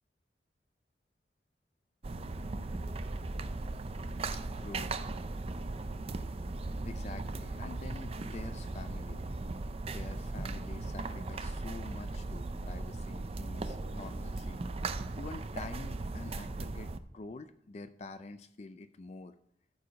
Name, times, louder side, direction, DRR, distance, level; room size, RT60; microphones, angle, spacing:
sound 1, 2.0-17.0, right 2 dB, 35° right, 0.4 m, -38 dB
voice 1, 4.3-4.9 6.8-9.2 9.9-19.3, left 3 dB, 40° left, 10 dB, 0.4 m, -47 dB
13.5 x 4.8 x 5.1 m, 0.75 s
head